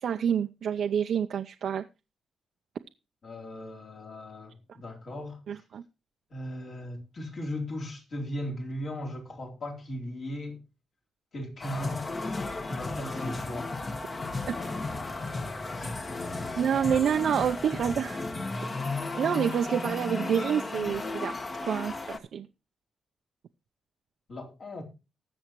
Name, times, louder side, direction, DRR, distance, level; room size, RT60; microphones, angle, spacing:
voice 1, 0.0-1.8 5.5-5.8 14.5-14.6 15.8-15.9 16.6-18.2 19.1-21.3 21.6-22.5, right 8 dB, 70° right, 0.6 m, -28 dB
voice 2, 3.2-5.6 6.3-10.6 11.3-13.8 14.3-16.6 24.3-24.8, left 1 dB, 55° left, 4.0 m, -39 dB
sound 1, 11.6-22.2, left 3 dB, 35° left, 1.5 m, -34 dB
20.0 x 7.1 x 3.0 m
cardioid pair, 85°, 0 cm